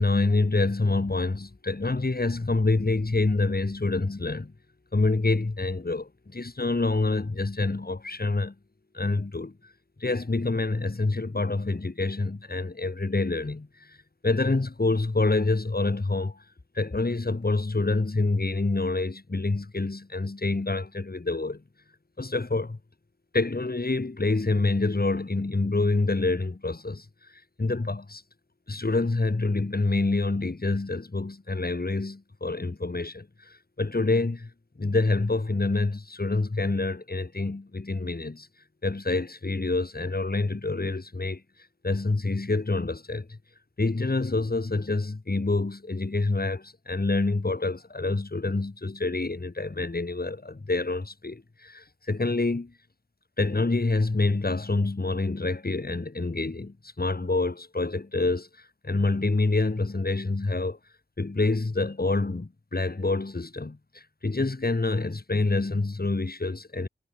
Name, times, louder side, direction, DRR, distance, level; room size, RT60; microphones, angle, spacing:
voice 1, 0.0-4.5 4.9-8.5 8.9-9.6 10.0-14.0 14.2-16.4 16.7-21.6 22.2-22.8 23.3-27.0 27.6-28.2 28.7-34.5 34.8-38.5 38.8-41.4 41.8-43.4 43.8-52.7 53.4-58.5 58.8-60.8 61.2-66.9, left 3 dB, 50° left, 5.0 m, -27 dB
wide cardioid pair, 50°, 20 cm